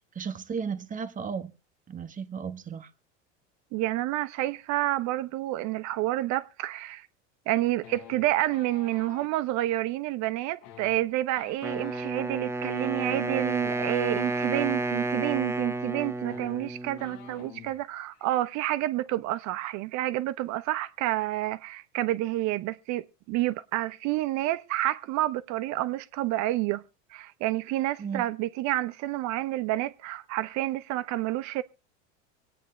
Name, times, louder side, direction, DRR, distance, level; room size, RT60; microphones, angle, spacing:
voice 1, 0.1-1.5 1.9-2.9 28.0-28.2, right 6 dB, 25° right, 1.2 m, -34 dB
voice 2, 3.7-7.1 7.5-26.8 27.1-31.6, right 16 dB, 55° right, 0.9 m, -29 dB
sound 1, 7.8-9.3 10.5-14.9 15.9-16.0 16.2-17.8 18.1-18.4 18.6-19.1, left 10 dB, 65° left, 1.2 m, -49 dB
Wind instrument woodwind instrument, 11.6-17.6, right 2 dB, 10° right, 0.6 m, -31 dB
25.0 x 9.0 x 3.2 m
supercardioid pair, 100°, 35 cm